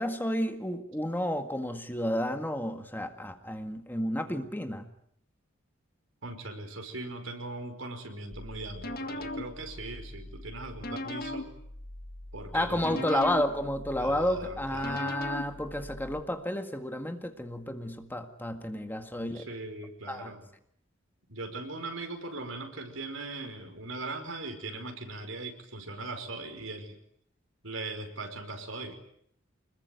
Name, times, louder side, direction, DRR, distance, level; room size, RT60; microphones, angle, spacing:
voice 1, 0.0-4.9 12.5-19.4 20.1-20.3, left 1 dB, 10° left, 7 dB, 1.9 m, -31 dB
voice 2, 6.2-11.5 12.3-13.3 14.0-15.2 19.2-20.5 21.3-27.0 27.6-29.0, right 2 dB, 80° right, 6 dB, 5.2 m, -39 dB
sound 1, 8.3-16.2, left 1 dB, 50° left, 1.8 m, -40 dB
26.0 x 21.5 x 9.5 m, 0.69 s
head